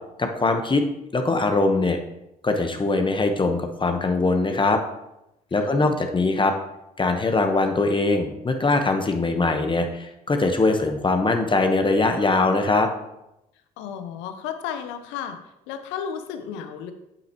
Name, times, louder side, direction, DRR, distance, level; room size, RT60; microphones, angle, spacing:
voice 1, 0.2-0.8 1.1-2.0 2.4-4.8 5.5-6.5 7.0-12.9, left 3 dB, 25° left, 5 dB, 1.1 m, -22 dB
voice 2, 5.5-6.0 13.8-15.4 15.7-16.9, left 8 dB, 75° left, 8 dB, 0.8 m, -33 dB
8.8 x 7.8 x 3.0 m, 0.88 s
hypercardioid pair, 55°, 19 cm